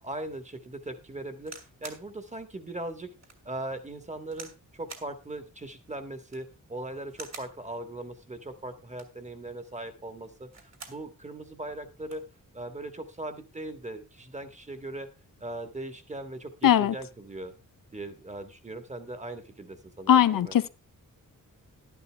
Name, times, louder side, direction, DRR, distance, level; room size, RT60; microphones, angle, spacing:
voice 1, 0.0-3.1 3.4-12.3 12.5-15.1 15.4-17.5 17.9-20.6, right 2 dB, 20° right, 1.6 m, -39 dB
sound 1, 1.5-2.1 2.6-2.7 3.2-3.4 4.3-4.6 4.9-5.1 6.2-6.5 7.1-7.6 8.8-9.2 10.3-11.0 11.5-11.6 11.8-12.3 13.1-13.4, right 4 dB, 50° right, 2.5 m, -46 dB
voice 2, 16.6-16.9 20.1-20.7, left 10 dB, 75° left, 0.6 m, -20 dB
12.0 x 11.0 x 3.5 m
wide cardioid pair, 150°, 34 cm